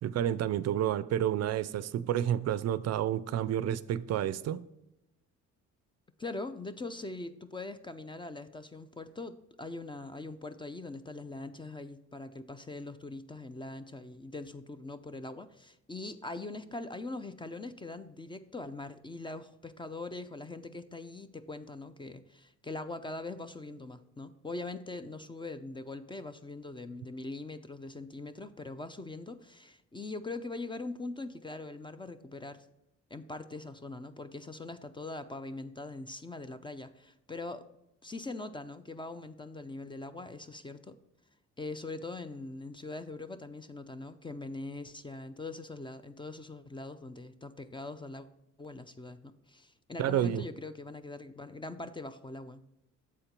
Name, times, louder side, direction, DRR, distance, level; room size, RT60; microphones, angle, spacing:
voice 1, 0.0-4.6 50.0-50.5, right 11 dB, 55° right, 16 dB, 0.4 m, -30 dB
voice 2, 6.2-32.7 33.1-37.7 38.0-41.0 41.6-48.3 48.6-52.6, left 2 dB, 15° left, 11 dB, 0.4 m, -42 dB
7.3 x 4.4 x 5.1 m, 0.89 s
cardioid pair, 90°, 30 cm